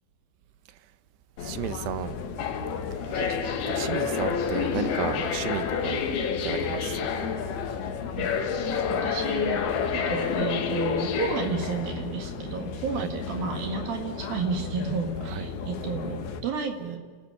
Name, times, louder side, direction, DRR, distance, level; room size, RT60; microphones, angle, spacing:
sound 1, 1.4-16.4, left 6 dB, 70° left, 3.5 m, -30 dB
voice 1, 1.4-2.2 3.1-3.2 3.7-6.2 6.4-7.3 12.9-13.1 15.2-15.5, right 12 dB, 85° right, 13 dB, 3.0 m, -34 dB
voice 2, 8.9-9.6 9.9-17.0, right 5 dB, 65° right, 4 dB, 3.4 m, -32 dB
29.5 x 13.0 x 9.5 m, 1.4 s
omnidirectional pair, 4.8 m